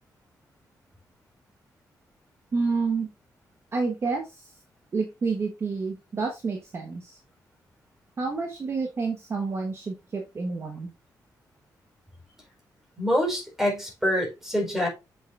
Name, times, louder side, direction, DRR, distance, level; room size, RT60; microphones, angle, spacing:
voice 1, 2.5-3.1 3.7-4.5 4.9-7.2 8.2-10.9, right 4 dB, 40° right, 1.2 m, -29 dB
voice 2, 13.0-14.9, equal, 5° right, 4.2 m, -25 dB
7.4 x 6.3 x 2.5 m
wide cardioid pair, 150°, 7 cm